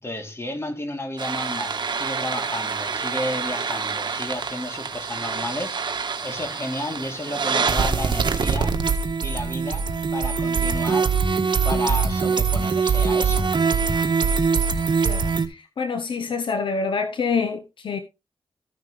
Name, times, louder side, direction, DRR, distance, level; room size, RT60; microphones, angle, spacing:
voice 1, 0.0-8.8 9.2-11.1 11.6-13.5, left 1 dB, 30° left, 3.3 m, -32 dB
sound 1, 1.2-15.5, right 5 dB, 60° right, 1.5 m, -24 dB
voice 2, 15.0-18.0, left 5 dB, 75° left, 0.9 m, -27 dB
14.5 x 6.2 x 3.3 m
cardioid pair, 60°, 9 cm